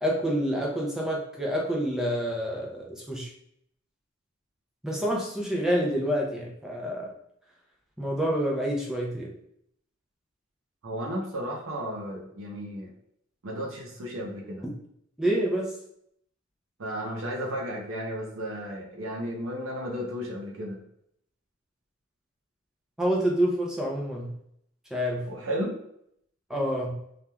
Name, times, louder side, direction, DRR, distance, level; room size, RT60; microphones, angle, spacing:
voice 1, 0.0-3.3 4.8-7.1 8.0-9.3 15.2-15.7 23.0-24.3 24.9-25.3 26.5-27.0, equal, 5° right, -3 dB, 0.4 m, -27 dB
voice 2, 10.8-12.9 13.4-14.7 16.8-20.8 25.3-25.7, equal, 85° right, -1 dB, 0.6 m, -33 dB
3.0 x 2.4 x 2.2 m, 0.72 s
head